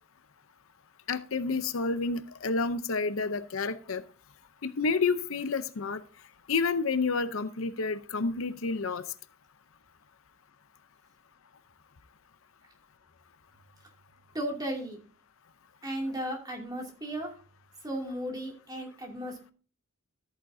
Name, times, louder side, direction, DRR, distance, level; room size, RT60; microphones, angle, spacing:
voice 1, 1.1-4.0 4.6-6.0 6.5-9.0, left 4 dB, 70° left, 12 dB, 0.7 m, -29 dB
voice 2, 14.3-15.0 15.8-17.3 17.8-19.5, right 1 dB, 15° right, 1 dB, 2.5 m, -35 dB
13.5 x 8.9 x 2.7 m, 0.36 s
head